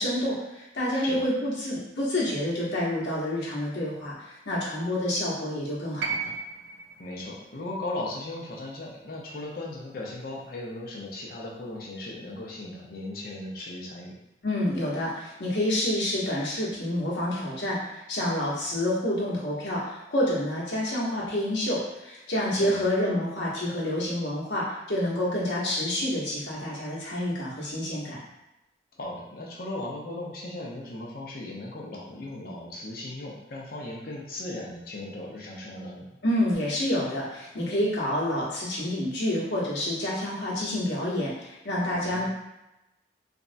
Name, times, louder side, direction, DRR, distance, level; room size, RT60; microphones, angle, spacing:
voice 1, 0.0-6.3 14.4-28.2 36.2-42.2, left 1 dB, 70° left, -5 dB, 0.9 m, -28 dB
sound 1, 6.0-10.2 11.4-11.5, right 5 dB, 70° right, 0.3 m, -37 dB
voice 2, 7.0-14.2 22.6-22.8 29.0-36.1 41.9-42.2, left 2 dB, 50° left, -3 dB, 0.6 m, -37 dB
3.4 x 2.0 x 2.5 m, 0.94 s
head